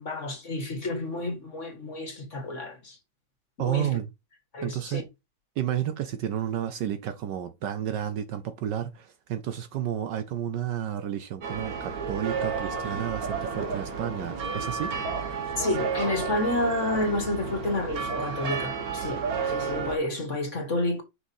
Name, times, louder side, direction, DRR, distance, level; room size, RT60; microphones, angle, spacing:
voice 1, 0.0-3.0 3.6-4.0 4.5-5.0 15.6-21.0, left 2 dB, 40° left, 1.7 m, -30 dB
voice 2, 3.6-4.1 4.6-5.0 5.6-14.9, right 10 dB, 70° right, 1.3 m, -31 dB
sound 1, 11.4-20.0, right 5 dB, 50° right, 1.7 m, -31 dB
6.3 x 5.7 x 2.7 m
omnidirectional pair, 2.2 m